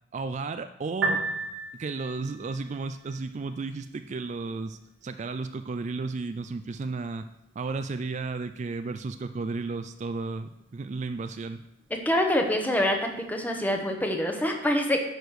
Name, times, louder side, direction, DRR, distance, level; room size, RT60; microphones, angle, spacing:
voice 1, 0.1-1.2 1.8-7.2 7.6-11.6, right 3 dB, 40° right, 9 dB, 0.4 m, -33 dB
Piano, 0.9-13.9, right 3 dB, 65° right, 1.8 m, -40 dB
voice 2, 11.9-15.0, left 1 dB, 10° left, 3 dB, 1.1 m, -26 dB
10.5 x 5.0 x 6.4 m, 0.87 s
head